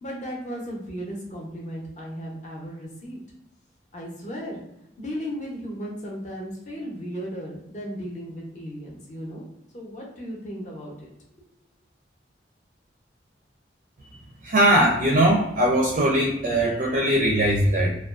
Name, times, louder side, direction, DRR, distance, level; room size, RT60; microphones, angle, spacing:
voice 1, 0.0-3.2 3.9-4.6 5.0-9.5 9.7-11.1, equal, 40° left, -2 dB, 0.6 m, -35 dB
voice 2, 14.4-17.9, right 1 dB, 45° right, -1 dB, 0.4 m, -20 dB
2.4 x 2.2 x 2.3 m, 0.86 s
head